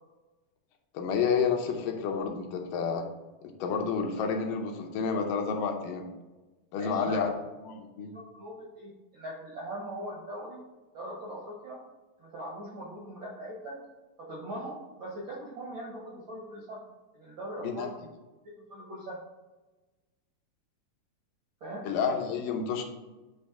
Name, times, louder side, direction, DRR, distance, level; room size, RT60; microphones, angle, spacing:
voice 1, 0.9-3.0 3.4-6.0 6.7-7.3 7.7-8.1 17.6-17.9 21.8-22.8, left 6 dB, 75° left, 3 dB, 2.4 m, -30 dB
voice 2, 6.7-7.3 8.1-10.6 10.9-11.8 12.2-13.8 14.2-16.8 17.1-17.9 18.4-19.2 21.6-21.9, right 1 dB, 65° right, -4 dB, 1.2 m, -40 dB
8.6 x 3.1 x 4.7 m, 1.2 s
omnidirectional pair, 3.9 m